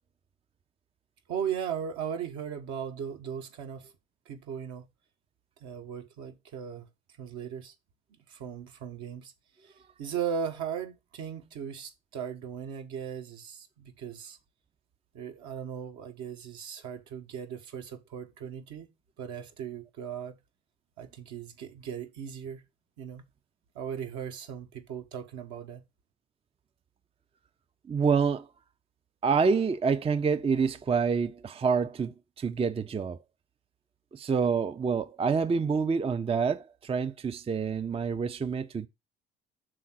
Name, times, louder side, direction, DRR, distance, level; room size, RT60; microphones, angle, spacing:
voice 1, 1.3-3.9 4.2-4.9 5.6-6.9 7.2-7.7 8.3-9.3 9.6-14.4 15.1-18.9 19.2-20.4 21.0-22.6 23.0-23.2 23.7-25.8, right 8 dB, 65° right, 1.3 m, -37 dB
voice 2, 27.9-28.5 29.2-33.2 34.1-38.9, right 5 dB, 20° right, 0.5 m, -27 dB
6.3 x 3.8 x 5.8 m
hypercardioid pair, 50°, 32 cm